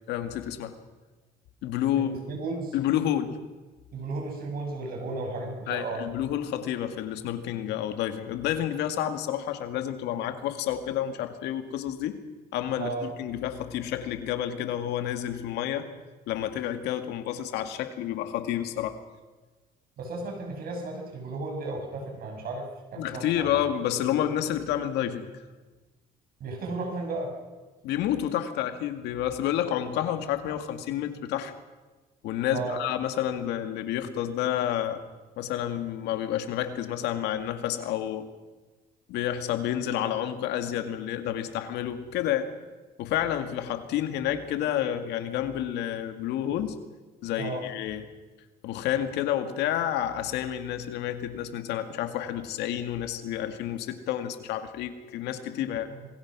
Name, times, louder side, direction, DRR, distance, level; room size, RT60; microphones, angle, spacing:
voice 1, 0.1-0.8 1.6-2.1 2.7-3.4 5.7-12.2 12.5-15.9 16.3-19.0 23.0-25.3 27.8-31.5 32.2-35.0 35.4-38.3 39.1-42.5 43.0-46.8 47.2-48.0 48.6-55.9, left 11 dB, 85° left, 8 dB, 2.2 m, -29 dB
voice 2, 2.0-2.8 3.9-6.0 12.8-13.1 20.0-23.5 26.4-27.3 32.5-32.8 47.4-47.6 55.9-56.1, right 3 dB, 60° right, 3 dB, 6.5 m, -34 dB
27.0 x 20.5 x 6.2 m, 1.2 s
cardioid pair, 110°, 17 cm